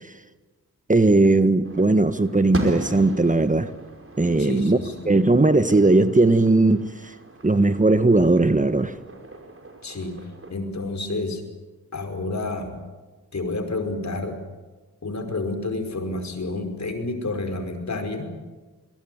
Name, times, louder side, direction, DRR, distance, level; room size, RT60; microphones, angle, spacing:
voice 1, 0.9-3.7 4.2-4.8 5.1-6.8 7.4-8.9, right 2 dB, 25° right, 1.3 m, -18 dB
sound 1, 1.6-10.5, right 2 dB, 40° right, 5.1 m, -38 dB
voice 2, 4.4-5.1 9.8-10.1 10.5-11.4 11.9-12.8 13.3-14.4 15.0-18.3, left 2 dB, 55° left, 5.3 m, -29 dB
23.0 x 19.5 x 9.5 m
cardioid pair, 45°, 33 cm